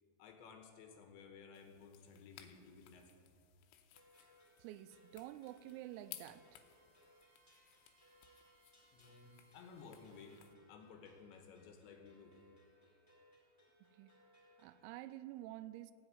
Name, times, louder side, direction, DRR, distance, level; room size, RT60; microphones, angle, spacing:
voice 1, 0.2-3.1 8.5-8.6 8.9-10.4 10.7-12.4, left 5 dB, 75° left, 3.1 m, -56 dB
sound 1, 1.5-10.5, left 12 dB, 90° left, 3.5 m, -60 dB
sound 2, 3.9-15.0, equal, 5° left, 3.2 m, -69 dB
voice 2, 4.6-6.6 13.9-14.1 14.6-15.9, right 14 dB, 90° right, 3.3 m, -50 dB
Bowed string instrument, 5.4-10.3, right 4 dB, 60° right, 2.6 m, -75 dB
15.5 x 7.9 x 9.4 m
omnidirectional pair, 5.9 m